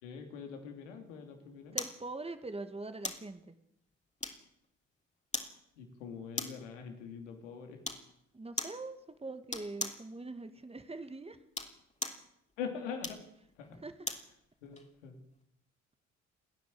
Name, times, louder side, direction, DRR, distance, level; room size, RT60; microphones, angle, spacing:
voice 1, 0.0-1.8 5.8-7.8 12.6-13.2 13.6-13.8 14.6-15.2, left 6 dB, 80° left, 4 dB, 3.1 m, -43 dB
voice 2, 1.7-3.5 8.3-11.4 13.7-14.0, right 3 dB, 15° right, 10 dB, 2.2 m, -43 dB
sound 1, 1.8-2.0 3.0-3.3 4.2-4.6 5.3-5.6 6.3-6.7 7.8-8.1 8.6-8.8 9.5-10.0 11.4-12.3 13.0-14.3 14.8-14.9, left 2 dB, 20° left, 3.5 m, -38 dB
29.5 x 10.0 x 8.8 m, 0.79 s
figure-of-eight pair, 45°, 36 cm